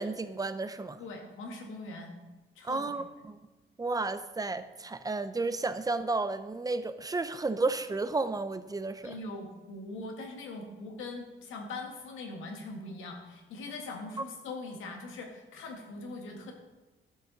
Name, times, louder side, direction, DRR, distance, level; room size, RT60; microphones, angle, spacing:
voice 1, 0.0-1.0 2.6-3.4 3.8-9.2, right 3 dB, 20° right, 12 dB, 0.6 m, -32 dB
voice 2, 1.0-2.2 2.5-2.8 9.0-16.5, left 2 dB, 85° left, 2 dB, 1.7 m, -41 dB
12.0 x 6.2 x 4.0 m, 1.1 s
cardioid pair, 90°, 20 cm